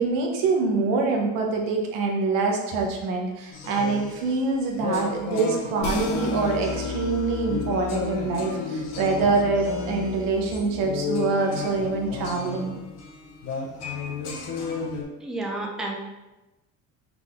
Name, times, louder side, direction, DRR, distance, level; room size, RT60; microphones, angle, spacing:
voice 1, 0.0-12.7, right 4 dB, 80° right, 1 dB, 1.0 m, -25 dB
sound 1, 3.5-15.0, left 4 dB, 50° left, 0.9 m, -33 dB
sound 2, 5.8-12.3, left 4 dB, 80° left, 1.0 m, -33 dB
voice 2, 15.2-16.0, right 2 dB, ahead, -1 dB, 0.4 m, -30 dB
3.7 x 3.7 x 3.6 m, 1.1 s
cardioid pair, 135°, 34 cm